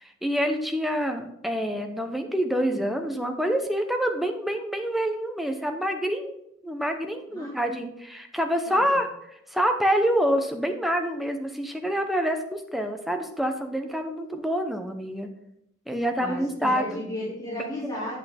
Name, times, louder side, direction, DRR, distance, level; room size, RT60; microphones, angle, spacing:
voice 1, 0.0-6.4 6.6-15.3 15.9-17.0 17.5-17.6, equal, ahead, 5 dB, 0.9 m, -27 dB
voice 2, 16.2-18.2, left 1 dB, 20° left, -8 dB, 2.8 m, -34 dB
8.4 x 8.3 x 3.5 m, 0.79 s
head